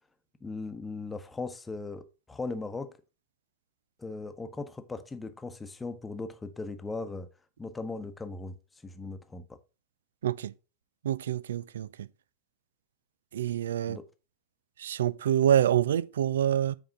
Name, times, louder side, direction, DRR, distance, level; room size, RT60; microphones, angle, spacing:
voice 1, 0.4-2.9 4.0-7.3 7.6-8.5 8.8-9.6 13.9-14.0, left 3 dB, 10° left, 0.9 m, -38 dB
voice 2, 10.2-10.5 11.0-12.1 13.3-14.0 14.8-16.8, right 10 dB, 60° right, 0.4 m, -26 dB
7.9 x 4.8 x 5.0 m
figure-of-eight pair, 90°, 0 cm